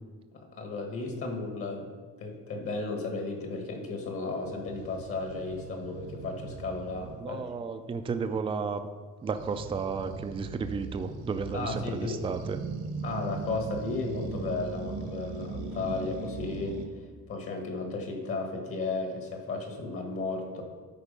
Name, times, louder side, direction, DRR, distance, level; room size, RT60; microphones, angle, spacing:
voice 1, 0.3-7.4 11.5-12.1 13.0-16.8 17.3-20.6, left 3 dB, 45° left, 3 dB, 1.4 m, -34 dB
sound 1, 4.4-7.2 9.3-16.9, right 5 dB, 70° right, 1.2 m, -39 dB
voice 2, 7.2-8.8 9.2-12.6, right 5 dB, 15° right, 7 dB, 0.4 m, -33 dB
12.5 x 4.6 x 5.2 m, 1.5 s
cardioid pair, 165°, 32 cm